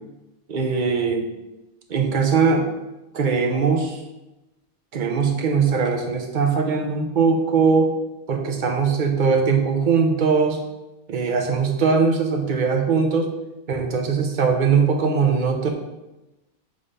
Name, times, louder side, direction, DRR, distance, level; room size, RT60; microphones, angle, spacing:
voice 1, 0.5-1.3 1.9-2.7 3.1-4.0 4.9-7.9 8.3-10.6 11.1-13.3 13.7-15.7, right 5 dB, 45° right, 3 dB, 0.7 m, -20 dB
5.5 x 3.4 x 5.4 m, 1.0 s
omnidirectional pair, 1.5 m